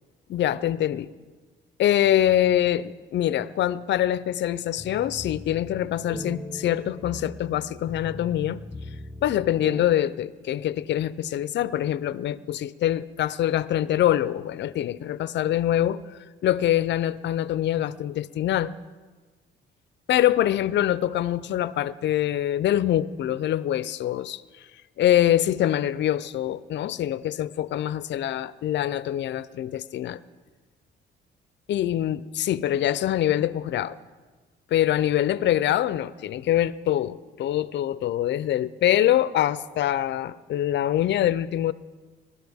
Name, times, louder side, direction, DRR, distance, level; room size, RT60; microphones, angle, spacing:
voice 1, 0.3-1.1 1.8-8.6 9.2-16.0 16.4-18.7 20.1-24.4 25.0-30.2 31.7-34.0 34.7-41.7, left 12 dB, 65° left, 16 dB, 0.5 m, -24 dB
sound 1, 4.8-9.9, left 2 dB, 10° left, 0.9 m, -39 dB
20.0 x 12.5 x 3.5 m, 1.4 s
cardioid pair, 90°, 20 cm